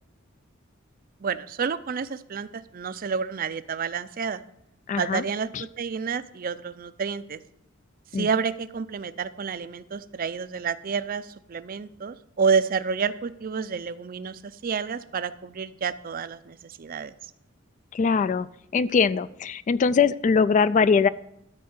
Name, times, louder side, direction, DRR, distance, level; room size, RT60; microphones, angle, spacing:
voice 1, 1.2-4.4 5.0-7.4 8.1-17.1, right 6 dB, 45° right, 14 dB, 0.5 m, -29 dB
voice 2, 4.9-5.2 5.5-5.6 8.1-8.3 17.9-18.5 18.7-21.1, left 5 dB, 40° left, 16 dB, 0.3 m, -22 dB
13.0 x 4.6 x 7.9 m, 0.79 s
head